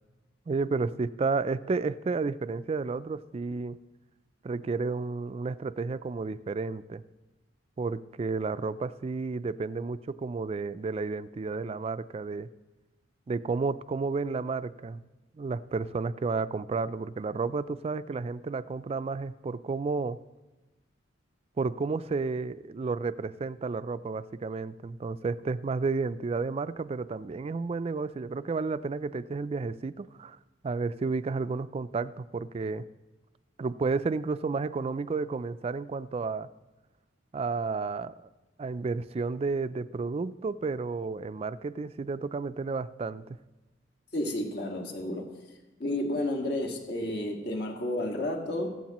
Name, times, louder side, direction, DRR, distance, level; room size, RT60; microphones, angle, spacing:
voice 1, 0.5-3.8 4.4-7.0 7.8-12.5 13.3-15.0 15.3-20.2 21.6-30.4 30.6-32.8 33.6-36.5 37.3-38.1 38.6-43.2, right 4 dB, 35° right, 15 dB, 0.3 m, -31 dB
voice 2, 44.1-45.4 45.8-48.7, left 1 dB, 60° left, 1 dB, 1.8 m, -31 dB
15.0 x 14.5 x 3.0 m, 1.1 s
head